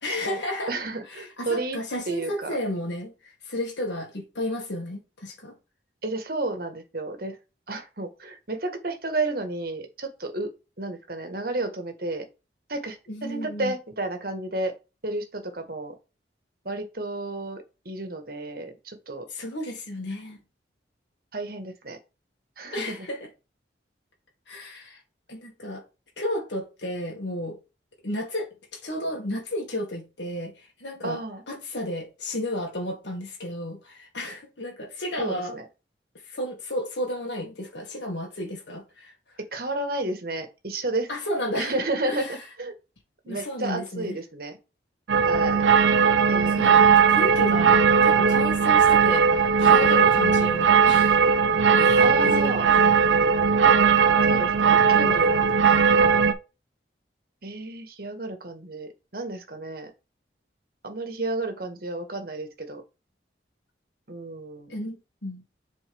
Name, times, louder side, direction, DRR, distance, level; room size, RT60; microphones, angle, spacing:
voice 1, 0.0-0.7 1.1-3.1 3.4-5.5 13.1-13.7 19.3-20.4 22.7-23.2 24.5-25.0 25.3-25.8 26.2-27.6 28.0-31.2 31.5-35.6 36.3-39.1 41.1-41.8 42.1-42.4 43.3-44.2 46.5-51.2 51.8-53.0 55.0-55.3 55.7-55.8 64.7-65.0 65.2-65.4, left 1 dB, 75° left, 1.9 m, -32 dB
voice 2, 0.7-1.8 2.1-2.6 6.0-7.4 7.7-10.5 10.8-12.3 12.7-14.7 15.0-15.9 16.6-19.3 21.3-22.0 22.6-23.1 31.0-31.4 35.2-35.6 39.4-41.1 41.5-42.7 43.2-44.6 45.2-45.6 46.2-46.9 52.0-52.7 54.3-55.3 57.4-59.9 60.8-62.8 64.1-64.8, right 2 dB, 55° right, 1.5 m, -31 dB
sound 1, 45.1-56.3, right 6 dB, 90° right, 0.7 m, -18 dB
7.2 x 4.3 x 3.5 m
head